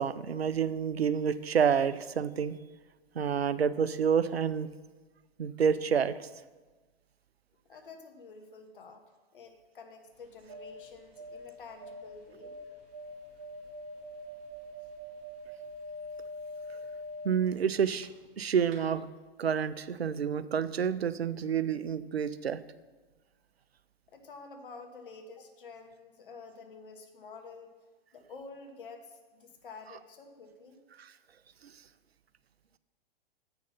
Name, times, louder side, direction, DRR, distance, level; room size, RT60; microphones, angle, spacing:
voice 1, 0.0-2.6 3.2-4.7 5.4-6.3 17.2-18.1 18.4-19.1 19.4-22.6 31.0-31.1 31.6-31.7, right 7 dB, 85° right, 15 dB, 0.5 m, -28 dB
voice 2, 7.6-9.0 9.3-12.6 24.1-27.7 28.1-30.8, left 4 dB, 60° left, 4 dB, 1.3 m, -49 dB
sound 1, 10.1-18.4 18.6-18.8, left 1 dB, 30° right, 1.5 m, -44 dB
7.6 x 5.8 x 5.6 m, 1.3 s
figure-of-eight pair, 110°, 30 cm